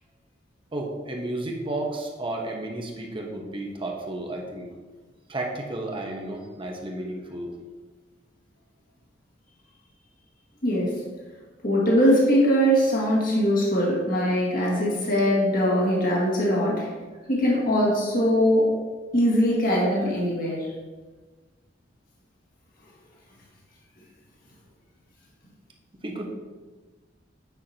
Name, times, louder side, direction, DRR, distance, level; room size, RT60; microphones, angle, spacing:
voice 1, 0.7-4.7 5.3-7.5 26.0-26.3, right 2 dB, 30° right, 0 dB, 1.0 m, -32 dB
voice 2, 10.6-11.0 11.6-16.9 17.3-18.7 19.1-20.7, equal, 50° left, -5 dB, 1.8 m, -21 dB
9.1 x 5.8 x 2.9 m, 1.3 s
head